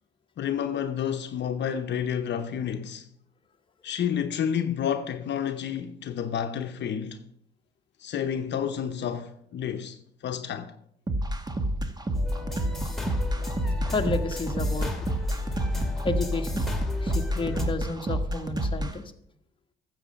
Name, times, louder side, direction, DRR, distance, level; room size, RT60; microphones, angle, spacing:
voice 1, 0.4-3.1 3.8-7.2 8.0-10.8, left 8 dB, 60° left, 0.8 m, -30 dB
sound 1, 11.1-18.9, right 1 dB, 20° right, 1.2 m, -29 dB
sound 2, 12.1-17.6, left 2 dB, ahead, 2.3 m, -32 dB
voice 2, 13.9-14.9 16.0-16.6 17.0-19.1, left 3 dB, 25° left, 1.2 m, -31 dB
12.5 x 7.7 x 5.2 m
cardioid pair, 90°, 20 cm